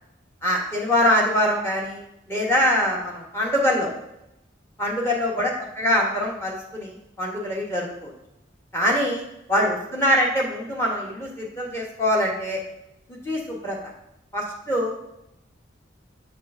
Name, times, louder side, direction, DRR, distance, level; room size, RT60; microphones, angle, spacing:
voice 1, 0.4-2.0 2.3-3.9 4.8-8.1 8.7-9.2 9.5-12.6 13.1-13.8 14.3-14.9, equal, 15° left, -2 dB, 1.2 m, -23 dB
6.8 x 6.5 x 2.6 m, 0.85 s
head